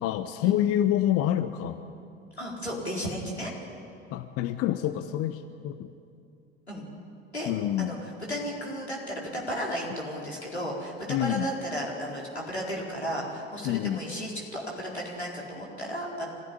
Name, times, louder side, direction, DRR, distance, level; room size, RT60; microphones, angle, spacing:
voice 1, 0.0-1.8 4.1-5.4 5.6-5.9 7.5-7.9 11.1-11.5 13.7-14.0, left 12 dB, 45° left, 10 dB, 1.0 m, -27 dB
voice 2, 2.4-3.5 6.7-6.9 7.3-7.5 7.8-16.3, equal, 90° left, -3 dB, 4.3 m, -34 dB
25.5 x 16.0 x 9.9 m, 2.5 s
figure-of-eight pair, 65°, 32 cm